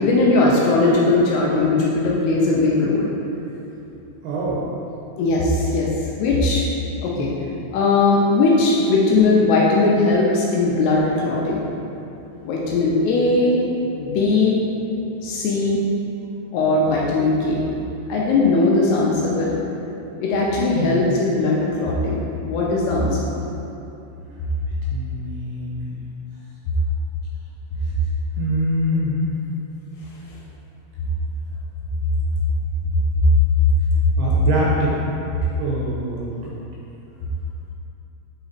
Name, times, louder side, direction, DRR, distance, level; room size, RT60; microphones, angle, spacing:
voice 1, 0.0-3.1 5.2-5.9 6.2-6.7 7.0-7.3 7.7-11.7 12.4-13.7 13.9-14.6 15.2-15.8 16.5-17.7 18.1-19.5 20.2-23.3, left 3 dB, 80° left, -4 dB, 2.7 m, -19 dB
voice 2, 4.2-4.7 7.2-7.4 20.7-21.0 24.9-26.0 28.4-29.3 34.2-35.0 35.6-36.6, right 1 dB, 75° right, -5 dB, 2.5 m, -25 dB
8.1 x 4.2 x 4.0 m, 2.8 s
omnidirectional pair, 5.1 m